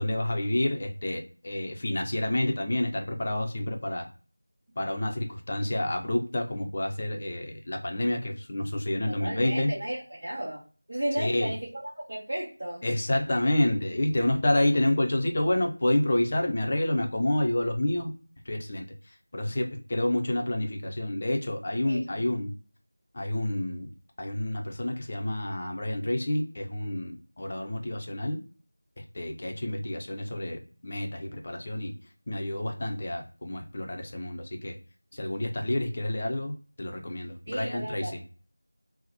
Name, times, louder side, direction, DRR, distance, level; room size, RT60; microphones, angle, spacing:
voice 1, 0.0-4.1 4.8-9.7 11.2-11.5 12.8-18.1 18.5-18.8 19.3-22.5 23.1-23.9 24.2-28.4 29.1-31.9 32.3-34.7 35.1-38.2, left 1 dB, 30° left, 0.5 m, -29 dB
voice 2, 9.1-10.6 10.9-12.8 21.9-22.2 37.5-38.1, right 1 dB, 50° right, 0.8 m, -34 dB
2.8 x 2.0 x 4.0 m
figure-of-eight pair, 170°, 0 cm